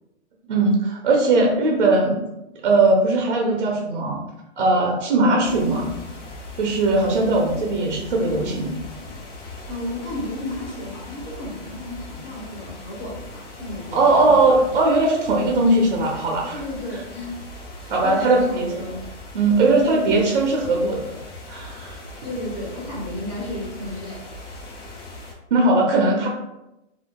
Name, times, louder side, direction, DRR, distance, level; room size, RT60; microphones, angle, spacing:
voice 1, 0.5-2.2 2.6-4.2 4.6-5.9 6.6-8.8 13.9-16.6 17.9-19.0 19.3-21.2 21.5-22.0 25.5-26.3, right 2 dB, 50° right, 0 dB, 0.4 m, -19 dB
sound 1, 5.4-25.3, left 1 dB, 80° left, 0.9 m, -39 dB
voice 2, 9.7-14.7 16.5-17.5 17.8-19.0 19.7-20.0 22.2-24.2, left 1 dB, 25° left, -8 dB, 0.6 m, -33 dB
2.3 x 2.1 x 3.3 m, 0.93 s
hypercardioid pair, 180°, 35 cm